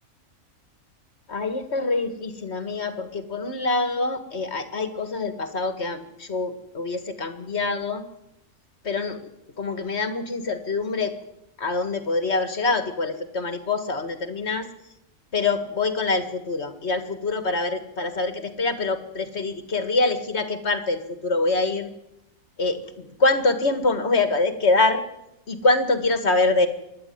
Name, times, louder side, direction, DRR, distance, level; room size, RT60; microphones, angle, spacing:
voice 1, 1.3-8.0 8.8-9.3 9.6-11.1 11.6-14.7 15.3-21.9 22.6-25.0 25.5-26.7, left 3 dB, 50° left, 9 dB, 2.1 m, -25 dB
26.0 x 11.5 x 9.5 m, 0.86 s
omnidirectional pair, 1.5 m